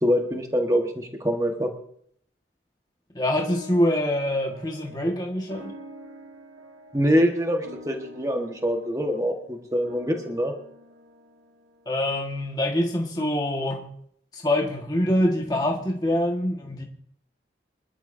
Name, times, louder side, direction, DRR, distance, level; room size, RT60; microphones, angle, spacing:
voice 1, 0.0-1.7 6.9-10.5, equal, 20° right, 1.4 m, -24 dB
voice 2, 3.1-5.7 11.8-13.8 14.3-16.8, left 1 dB, 20° left, 1.6 m, -25 dB
sound 1, 3.3-12.0, left 1 dB, 90° right, 2.0 m, -46 dB
25.5 x 12.0 x 2.7 m
head